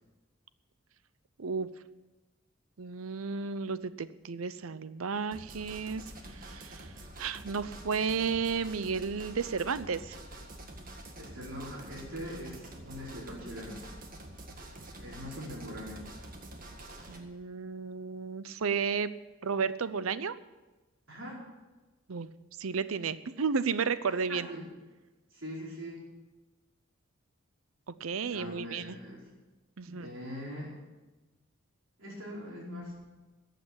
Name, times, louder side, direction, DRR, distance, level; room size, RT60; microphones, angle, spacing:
voice 1, 1.4-1.7 2.8-6.0 6.3-6.9 7.2-10.2 17.1-19.1 19.4-20.3 22.1-22.3 22.6-24.5 27.9-28.9 29.8-30.1, right 5 dB, 90° right, 15 dB, 0.7 m, -33 dB
sound 1, 5.3-17.2, right 1 dB, 40° right, 1.8 m, -47 dB
voice 2, 11.1-13.8 14.9-16.0 21.1-21.4 24.1-24.7 25.3-26.0 28.3-29.3 29.9-30.8 32.0-32.9, equal, 65° right, -4 dB, 4.7 m, -42 dB
14.5 x 7.7 x 8.8 m, 1.2 s
head